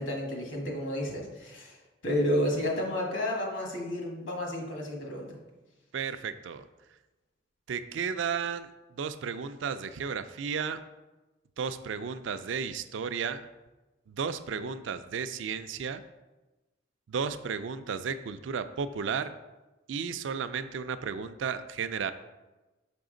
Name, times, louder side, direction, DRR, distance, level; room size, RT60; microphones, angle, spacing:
voice 1, 0.0-1.8 2.0-5.3, left 1 dB, 70° left, 0 dB, 1.5 m, -31 dB
voice 2, 5.9-6.6 7.7-10.8 11.6-13.5 14.1-16.0 17.1-19.3 19.9-22.1, right 6 dB, 70° right, 11 dB, 0.4 m, -33 dB
6.1 x 5.5 x 3.8 m, 1.1 s
head